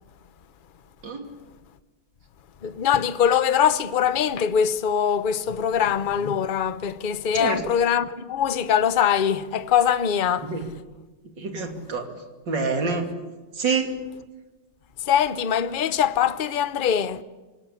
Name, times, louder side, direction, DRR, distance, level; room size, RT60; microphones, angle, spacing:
voice 1, 2.6-10.5 15.0-17.2, left 8 dB, 55° left, 0.5 m, -22 dB
voice 2, 11.4-12.0 12.5-13.1 13.5-13.9, right 4 dB, 65° right, 3.4 m, -26 dB
26.5 x 18.0 x 8.5 m
omnidirectional pair, 2.1 m